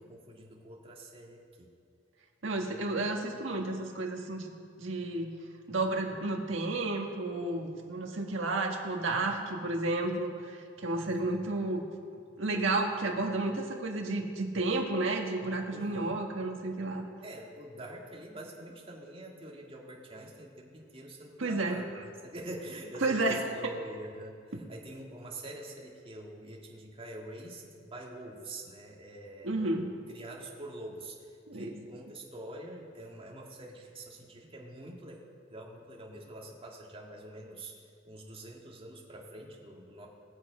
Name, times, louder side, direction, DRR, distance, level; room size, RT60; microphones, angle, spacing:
voice 1, 0.0-1.7 11.0-11.4 15.7-16.2 17.2-21.9 22.2-24.4 24.7-29.6 30.1-35.2 35.5-37.8 38.0-40.1, right 1 dB, 30° right, -1 dB, 1.8 m, -45 dB
voice 2, 2.4-4.5 4.8-5.3 5.7-11.8 12.4-17.0 21.4-21.8 23.0-23.7 24.5-24.6 29.4-29.9 31.5-31.9, right 2 dB, 80° right, 2 dB, 1.5 m, -32 dB
20.0 x 7.5 x 5.0 m, 2.1 s
head